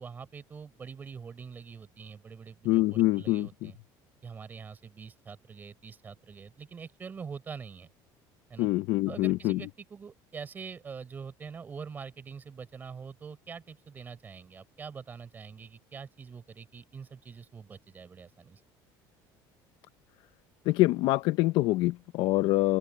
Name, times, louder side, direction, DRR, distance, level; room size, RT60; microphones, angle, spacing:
voice 1, 0.0-3.7 4.2-7.9 8.5-8.7 9.1-18.6, right 6 dB, 20° right, 4.6 m, -44 dB
voice 2, 2.6-3.7 8.6-9.6 20.7-22.8, left 18 dB, 60° left, 0.5 m, -25 dB
open air
cardioid pair, 170°, 9 cm